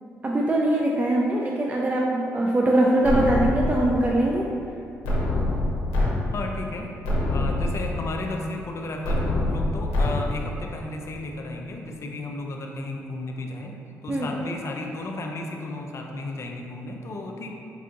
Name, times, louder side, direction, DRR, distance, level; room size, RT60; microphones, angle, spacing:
voice 1, 0.2-4.5 14.1-14.3, right 1 dB, 25° right, -2 dB, 0.3 m, -22 dB
sound 1, 3.0-4.1 5.0-6.1 6.5-6.6 7.0-8.1 9.0-10.1, left 1 dB, 90° left, 0.7 m, -25 dB
voice 2, 6.3-6.9 7.3-13.8 14.0-17.5, left 2 dB, 50° left, 2 dB, 0.5 m, -33 dB
4.7 x 2.4 x 2.6 m, 2.7 s
supercardioid pair, 55°, 6 cm